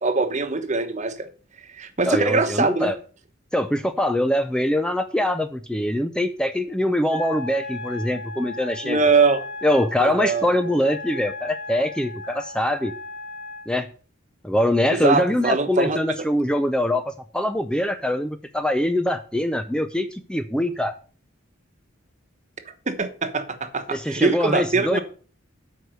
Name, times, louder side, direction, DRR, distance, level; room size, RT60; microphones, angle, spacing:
voice 1, 0.0-1.3 1.7-2.9 8.8-9.4 10.0-10.5 15.0-16.0 22.7-25.0, right 4 dB, 35° right, 9 dB, 1.1 m, -22 dB
voice 2, 2.1-3.0 3.5-9.0 9.6-12.9 13.7-13.9 14.4-20.9 23.9-25.0, left 1 dB, 5° left, 9 dB, 0.5 m, -23 dB
Wind instrument woodwind instrument, 7.1-13.7, left 2 dB, 55° left, 2.2 m, -36 dB
12.5 x 4.9 x 6.5 m, 0.40 s
head